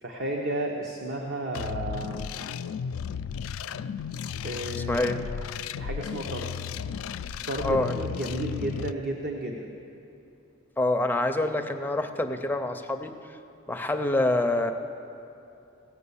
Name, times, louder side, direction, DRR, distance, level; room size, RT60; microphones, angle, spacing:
voice 1, 0.0-2.3 4.4-5.0 5.8-6.5 7.4-9.7, right 1 dB, 55° right, 0 dB, 0.9 m, -32 dB
sound 1, 1.5-8.9, left 7 dB, 90° left, 0.3 m, -34 dB
voice 2, 4.9-5.2 7.6-8.0 10.8-13.4 13.7-14.7, left 2 dB, 10° left, 5 dB, 0.5 m, -26 dB
17.0 x 7.1 x 7.0 m, 2.7 s
head